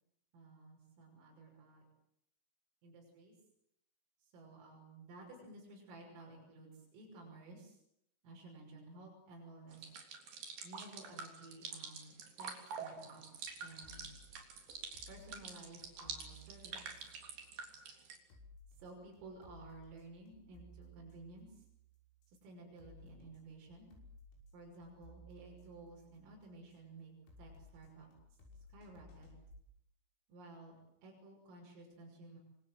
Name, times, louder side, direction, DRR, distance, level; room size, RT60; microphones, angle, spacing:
voice 1, 0.3-1.8 2.8-3.3 4.2-7.8 8.2-10.0 10.6-13.2 13.6-14.1 15.1-17.0 18.8-21.7 22.3-23.9 24.5-27.1 27.4-28.1 28.7-29.3 30.3-32.4, right 2 dB, 80° right, -2 dB, 8.7 m, -54 dB
sound 1, 9.7-18.2, right 5 dB, 55° right, 5.1 m, -47 dB
sound 2, 13.4-29.6, equal, 80° left, 8.8 m, -60 dB
27.5 x 26.0 x 7.9 m, 0.74 s
omnidirectional pair, 5.8 m